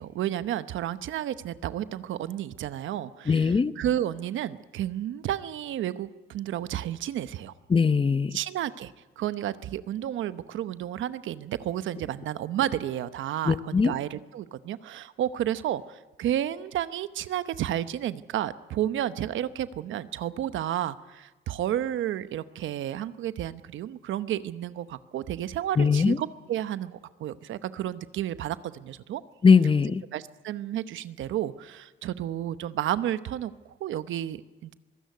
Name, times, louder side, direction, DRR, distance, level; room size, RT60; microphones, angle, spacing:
voice 1, 0.0-7.5 8.3-29.2 30.1-34.7, right 11 dB, 75° right, 14 dB, 0.9 m, -31 dB
voice 2, 3.3-3.7 7.7-8.4 13.5-13.9 25.8-26.2 29.4-30.0, left 5 dB, 25° left, 14 dB, 0.8 m, -20 dB
23.5 x 16.0 x 9.4 m, 1.2 s
cardioid pair, 90°, 20 cm